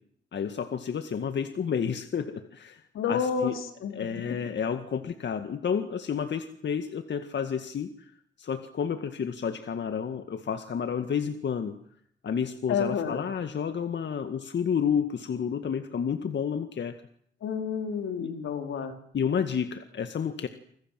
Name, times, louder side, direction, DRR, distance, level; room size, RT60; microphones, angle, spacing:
voice 1, 0.3-2.8 3.1-3.5 3.9-8.1 8.4-11.7 12.2-16.9 18.2-18.3 19.1-20.5, left 7 dB, 60° left, 8 dB, 2.0 m, -30 dB
voice 2, 2.9-3.5 3.8-4.1 12.7-13.2 17.4-18.9, left 6 dB, 85° left, 5 dB, 4.4 m, -29 dB
28.5 x 26.0 x 7.7 m, 0.67 s
cardioid pair, 70°, 20 cm